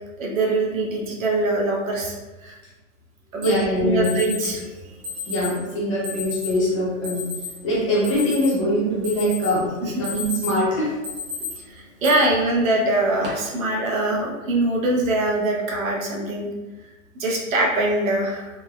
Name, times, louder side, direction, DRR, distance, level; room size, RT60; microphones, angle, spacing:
voice 1, 0.2-2.1 2.4-2.5 3.3-3.6 3.8-4.6 9.8-9.9 11.6-16.5 17.2-18.5, right 2 dB, 80° right, -2 dB, 0.9 m, -23 dB
voice 2, 3.4-4.2 5.3-7.3 7.6-10.9, equal, 25° left, -7 dB, 0.6 m, -23 dB
Alarm, 3.4-3.5 4.0-4.5 5.0-5.5 6.0-6.5 7.0-7.5 7.9-8.7 9.0-9.5 9.9-10.6 11.0-11.5 12.0-12.1 12.9-13.3, left 5 dB, 40° right, 0.8 m, -32 dB
3.3 x 2.1 x 2.3 m, 1.2 s
hypercardioid pair, 165°, 40 cm